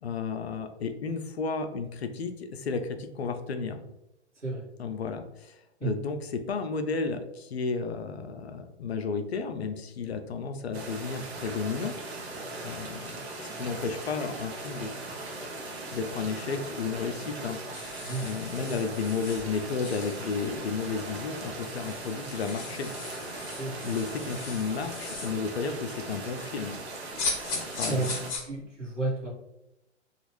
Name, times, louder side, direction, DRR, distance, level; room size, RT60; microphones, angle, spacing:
voice 1, 0.0-3.8 4.8-11.9 12.6-14.9 15.9-17.6 18.2-22.9 23.8-26.8 27.5-28.1, left 5 dB, 65° left, 7 dB, 0.5 m, -33 dB
sound 1, 10.7-28.3, right 2 dB, 60° right, 0.8 m, -39 dB
sound 2, 17.7-20.5 21.1-21.2 21.4-25.4 27.2-28.4, left 4 dB, 30° left, 0.7 m, -38 dB
voice 2, 23.4-23.9 27.9-28.2 28.4-29.3, right 3 dB, 90° right, -5 dB, 1.3 m, -32 dB
3.0 x 2.3 x 3.0 m, 0.90 s
figure-of-eight pair, 115°, 35 cm